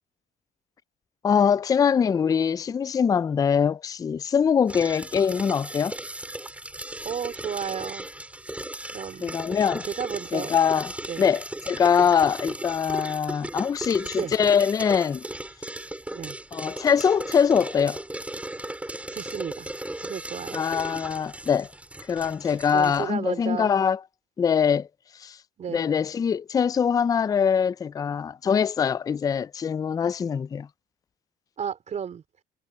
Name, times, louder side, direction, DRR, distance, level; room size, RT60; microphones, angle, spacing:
voice 1, 1.2-6.0 9.2-9.9 10.3-10.9 11.2-15.2 16.5-18.0 20.5-21.7 22.1-24.0 24.4-24.9 25.2-25.4 25.7-30.7, left 7 dB, 20° left, 0.3 m, -23 dB
sound 1, 4.7-23.1, right 1 dB, 5° right, 5.3 m, -37 dB
voice 2, 7.0-8.1 8.9-9.3 9.9-10.6 11.1-11.3 12.0-12.1 14.0-14.3 16.1-16.4 19.1-19.7 20.0-20.6 22.7-23.8 25.6-25.9 31.6-32.2, right 7 dB, 40° right, 4.1 m, -33 dB
cardioid pair, 120°, 18 cm